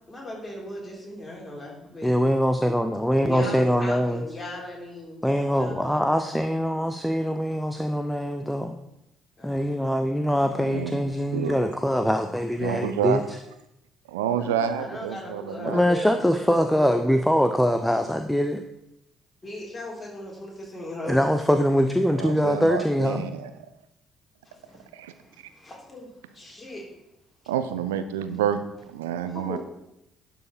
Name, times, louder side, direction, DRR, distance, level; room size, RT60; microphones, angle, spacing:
voice 1, 0.1-2.1 3.2-7.1 9.4-9.9 14.3-17.0 19.4-21.2 24.4-26.8 29.3-29.6, left 1 dB, 25° left, -2 dB, 3.5 m, -39 dB
voice 2, 2.0-4.2 5.2-8.7 9.4-13.4 15.6-18.6 21.0-23.2, equal, 5° left, 7 dB, 0.6 m, -23 dB
voice 3, 10.6-11.0 11.3-11.7 12.6-13.2 14.1-15.8 22.1-23.5 24.9-25.1 27.5-29.6, right 9 dB, 75° right, 10 dB, 0.4 m, -29 dB
11.5 x 4.6 x 5.3 m, 0.86 s
figure-of-eight pair, 45°, 0 cm